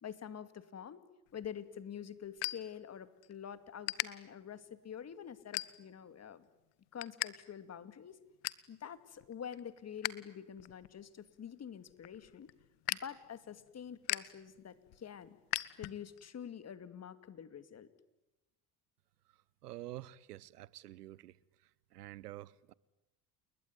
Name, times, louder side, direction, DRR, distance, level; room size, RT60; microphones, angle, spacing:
voice 1, 0.0-1.0 1.3-6.5 6.9-8.2 8.7-12.5 12.9-15.4 15.8-17.9, left 8 dB, 35° left, 2.4 m, -47 dB
sound 1, 1.3-3.3 3.6-4.1 4.6-4.9 5.4-6.1 6.5-7.3 7.6-7.7 8.1-8.7 9.2-10.1 10.5-16.3, left 21 dB, 60° left, 1.3 m, -40 dB
voice 2, 19.6-21.4 21.6-22.7, right 15 dB, 85° right, 1.0 m, -48 dB
30.0 x 21.0 x 9.4 m
hypercardioid pair, 75°, 46 cm